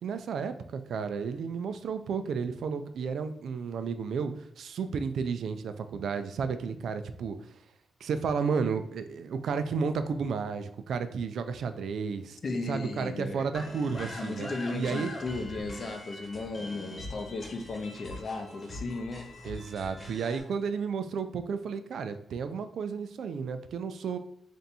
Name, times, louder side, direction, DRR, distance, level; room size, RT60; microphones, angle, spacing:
voice 1, 0.0-7.4 8.0-12.4 12.7-15.1 19.4-24.2, right 5 dB, 70° right, 9 dB, 0.3 m, -32 dB
voice 2, 12.4-13.5 14.2-19.3, left 3 dB, 45° left, 6 dB, 0.5 m, -35 dB
sound 1, 13.5-20.4, left 1 dB, 30° left, 1.0 m, -43 dB
3.4 x 2.6 x 4.1 m, 0.74 s
cardioid pair, 100°, 0 cm